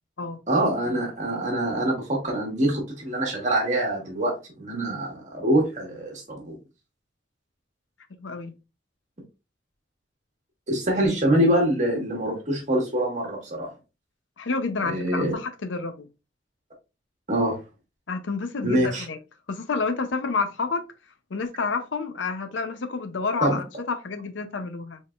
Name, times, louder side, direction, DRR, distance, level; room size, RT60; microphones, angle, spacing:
voice 1, 0.5-6.6 10.7-13.7 14.8-15.3 17.3-17.6 18.6-19.0 23.4-23.6, right 1 dB, 40° right, 1.5 m, -24 dB
voice 2, 8.2-8.5 14.4-16.1 18.1-19.2 19.5-20.8 21.3-25.0, left 4 dB, 75° left, 0.6 m, -29 dB
4.1 x 3.8 x 2.4 m
head